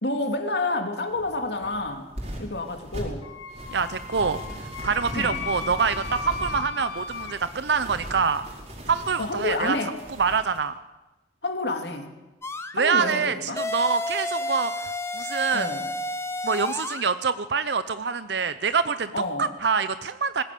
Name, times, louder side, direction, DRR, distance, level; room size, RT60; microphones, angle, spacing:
voice 1, 0.0-2.1 2.4-3.2 5.1-5.5 9.2-10.0 11.4-12.1 12.7-13.6 15.5-15.9 19.1-19.5, left 2 dB, 65° left, 5 dB, 2.6 m, -29 dB
sound 1, 1.1-10.6, right 1 dB, 40° right, 4.7 m, -39 dB
Wind instrument woodwind instrument, 3.2-7.4, left 5 dB, 85° left, 3.4 m, -36 dB
voice 2, 3.7-4.4 4.8-8.4 8.9-9.8 10.2-10.7 12.7-15.7 16.4-19.1 19.4-20.4, right 5 dB, 65° right, 12 dB, 0.7 m, -25 dB
sound 2, 12.4-12.7 13.6-17.1, left 1 dB, 15° left, 0.9 m, -31 dB
20.0 x 16.5 x 8.4 m, 1.1 s
head